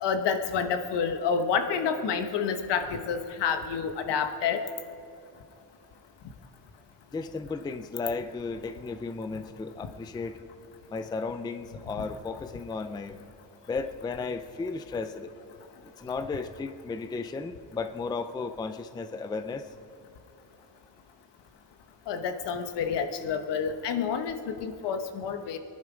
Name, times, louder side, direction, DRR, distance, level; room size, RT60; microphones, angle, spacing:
voice 1, 0.0-4.6 22.1-25.6, left 6 dB, 75° left, 8 dB, 1.2 m, -29 dB
voice 2, 7.1-10.4 10.9-13.2 13.7-15.3 16.0-19.7, left 4 dB, 10° left, 10 dB, 0.3 m, -34 dB
23.5 x 11.0 x 4.9 m, 2.6 s
cardioid pair, 165°, 42 cm